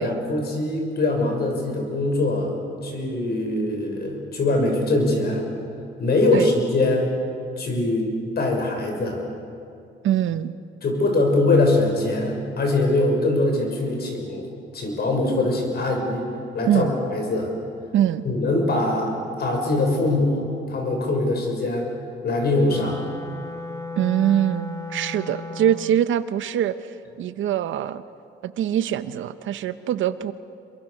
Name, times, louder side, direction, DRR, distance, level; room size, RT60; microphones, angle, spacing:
voice 1, 0.0-2.5 2.8-5.5 6.0-7.1 7.6-8.1 8.4-9.2 10.8-14.5 14.7-16.3 16.5-17.5 18.2-19.1 19.4-21.9 22.2-23.0, left 2 dB, 55° left, 2 dB, 6.4 m, -22 dB
voice 2, 10.0-10.6 16.7-16.9 17.9-18.2 24.0-28.0 28.4-30.3, right 11 dB, 75° right, 13 dB, 1.0 m, -23 dB
Wind instrument woodwind instrument, 22.6-26.0, left 3 dB, 15° left, 2.1 m, -35 dB
27.5 x 22.5 x 6.7 m, 2.5 s
cardioid pair, 90°, 20 cm